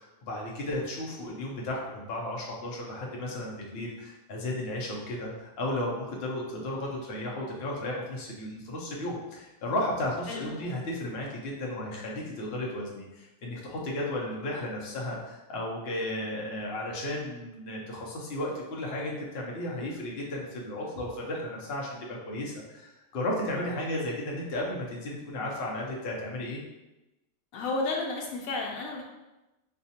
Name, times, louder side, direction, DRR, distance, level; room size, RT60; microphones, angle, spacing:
voice 1, 0.0-26.6, left 1 dB, 55° left, -3 dB, 0.9 m, -34 dB
voice 2, 10.3-10.7 27.5-29.0, left 3 dB, 80° left, -1 dB, 1.0 m, -32 dB
4.2 x 2.3 x 2.7 m, 1.0 s
omnidirectional pair, 1.4 m